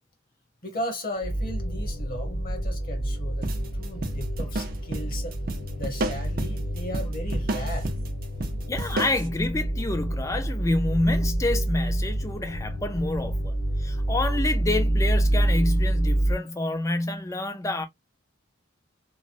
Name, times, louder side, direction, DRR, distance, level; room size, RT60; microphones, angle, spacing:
voice 1, 0.6-5.4 5.8-7.9, equal, 45° left, 1.1 m, -36 dB
sound 1, 1.2-16.3, right 1 dB, 80° left, 1.3 m, -27 dB
sound 2, 3.4-9.3, right 2 dB, 45° right, 0.6 m, -33 dB
voice 2, 8.7-17.9, left 2 dB, 15° left, 0.4 m, -28 dB
2.9 x 2.2 x 2.6 m
head